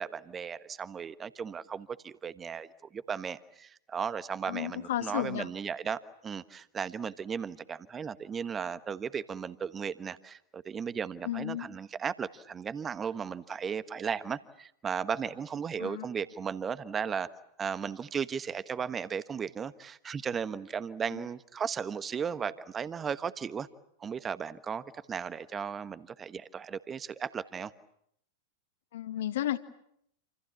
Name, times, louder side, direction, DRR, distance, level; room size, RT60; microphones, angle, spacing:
voice 1, 0.0-17.3 17.6-23.7 24.0-27.7, right 7 dB, 20° right, 15 dB, 1.3 m, -36 dB
voice 2, 4.5-5.5 11.2-11.7 15.8-16.1 21.1-21.2 28.9-29.6, left 12 dB, 55° left, 11 dB, 1.8 m, -33 dB
28.5 x 27.5 x 7.3 m, 0.73 s
figure-of-eight pair, 90°, 0 cm